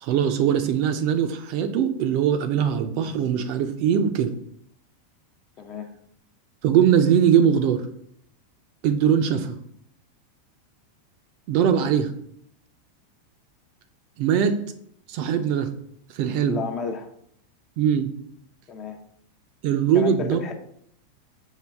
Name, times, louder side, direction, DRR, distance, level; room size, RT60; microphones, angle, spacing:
voice 1, 0.0-4.3 6.6-7.8 8.8-9.6 11.5-12.1 14.2-14.6 15.1-15.7 16.1-16.6 17.8-18.1 19.6-20.4, right 8 dB, 55° right, 8 dB, 0.5 m, -21 dB
voice 2, 5.6-5.9 16.5-17.1 18.7-19.0 19.9-20.5, left 5 dB, 35° left, 6 dB, 0.6 m, -32 dB
5.5 x 2.3 x 3.4 m, 0.68 s
hypercardioid pair, 110°, 0 cm